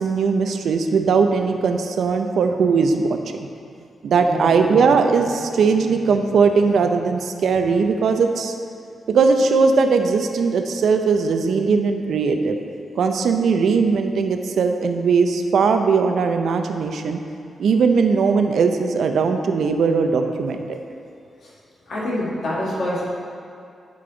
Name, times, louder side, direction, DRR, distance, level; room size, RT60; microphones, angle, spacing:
voice 1, 0.0-3.4 4.0-8.5 9.1-12.6 13.0-17.2 17.6-20.8, right 5 dB, 70° right, 6 dB, 0.5 m, -19 dB
voice 2, 4.2-4.9 21.4-21.5 21.9-23.1, left 1 dB, 55° left, -6 dB, 2.0 m, -27 dB
9.9 x 5.3 x 3.9 m, 2.5 s
wide cardioid pair, 150°, 0 cm